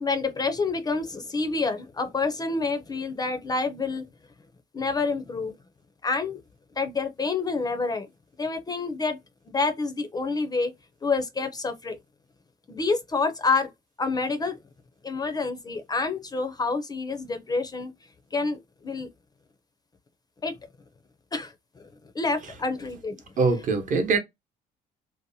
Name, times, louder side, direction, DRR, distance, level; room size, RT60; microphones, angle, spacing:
voice 1, 0.0-4.0 4.7-5.5 6.0-6.4 6.8-8.0 8.4-9.2 9.5-10.7 11.0-12.0 12.7-13.7 14.0-14.5 15.0-17.9 18.3-18.6 18.8-19.1 20.4-20.5 21.3-21.5 22.2-23.1, left 4 dB, 25° left, 0.4 m, -27 dB
voice 2, 23.4-24.2, right 4 dB, 50° right, 0.8 m, -23 dB
2.7 x 2.1 x 2.6 m
cardioid pair, 110°, 17 cm